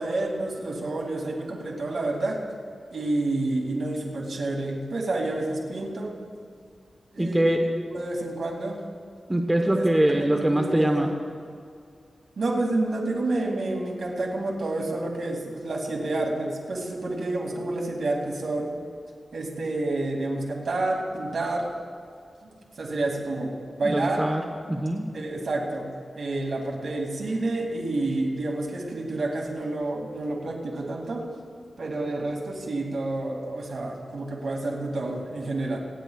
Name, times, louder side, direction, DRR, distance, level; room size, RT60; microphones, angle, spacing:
voice 1, 0.0-2.4 2.9-6.1 7.1-7.6 7.9-8.8 9.6-9.7 10.1-10.9 12.4-18.7 19.3-21.7 22.4-23.5 23.8-24.2 25.1-25.9 26.2-31.2 31.8-35.8, right 2 dB, 75° right, -1 dB, 2.3 m, -29 dB
voice 2, 7.2-7.6 9.3-11.1 23.8-24.4 24.7-25.0, right 1 dB, 15° right, 2 dB, 1.0 m, -23 dB
26.5 x 10.0 x 2.3 m, 2.3 s
wide cardioid pair, 75°, 0 cm